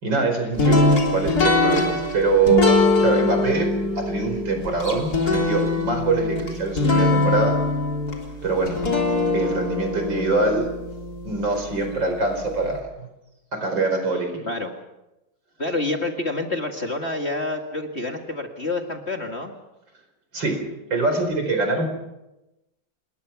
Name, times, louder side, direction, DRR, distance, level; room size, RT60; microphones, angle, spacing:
voice 1, 0.0-2.7 3.0-3.7 4.0-7.5 8.4-8.8 9.3-10.7 11.2-13.1 13.5-14.4 20.3-20.6 20.9-21.9, right 3 dB, 65° right, 5 dB, 5.4 m, -23 dB
sound 1, 0.6-11.6, left 2 dB, 50° left, 4.1 m, -22 dB
voice 2, 15.6-19.5, left 2 dB, 35° left, 4 dB, 2.1 m, -28 dB
28.0 x 21.5 x 6.0 m, 0.95 s
omnidirectional pair, 2.2 m